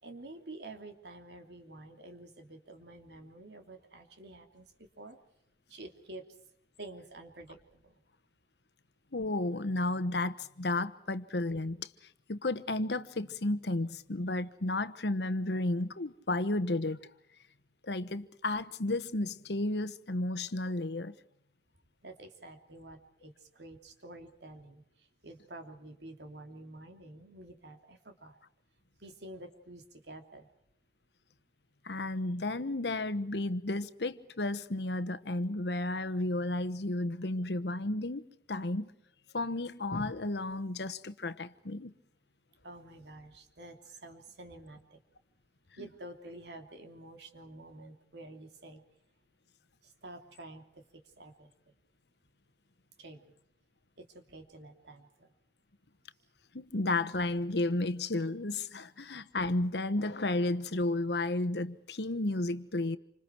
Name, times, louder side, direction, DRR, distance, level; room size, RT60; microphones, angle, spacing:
voice 1, 0.0-5.2 5.7-6.3 6.8-7.9 22.0-24.8 25.2-28.4 29.0-30.5 42.6-45.0 45.8-48.8 49.8-51.5 53.0-53.3 54.0-55.3, right 2 dB, 75° right, 3.0 m, -49 dB
voice 2, 9.1-11.9 12.3-17.0 17.8-21.1 31.8-38.9 39.3-41.9 45.8-45.9 56.5-63.0, left 2 dB, 70° left, 1.1 m, -32 dB
28.0 x 26.0 x 4.6 m
head